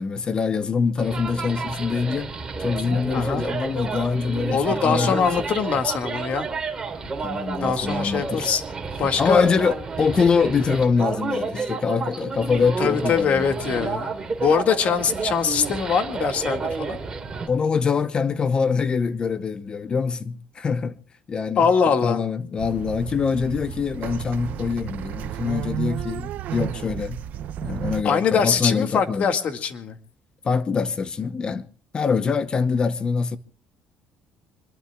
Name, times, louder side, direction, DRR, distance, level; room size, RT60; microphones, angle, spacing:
voice 1, 0.0-2.3 2.6-5.3 7.2-8.5 9.2-13.5 17.5-21.0 21.3-21.7 22.0-27.2 27.6-29.3 30.4-31.7 31.9-33.4, left 5 dB, 30° left, 0.8 m, -24 dB
sound 1, 1.0-17.5, right 4 dB, 20° right, 3.5 m, -30 dB
voice 2, 3.1-3.5 4.5-6.5 7.6-8.6 9.0-9.5 12.8-17.0 21.6-22.2 28.0-30.0, left 6 dB, 50° left, 2.0 m, -23 dB
sound 2, 22.6-28.0, right 10 dB, 60° right, 0.8 m, -32 dB
26.0 x 21.5 x 2.3 m
cardioid pair, 135°, 3 cm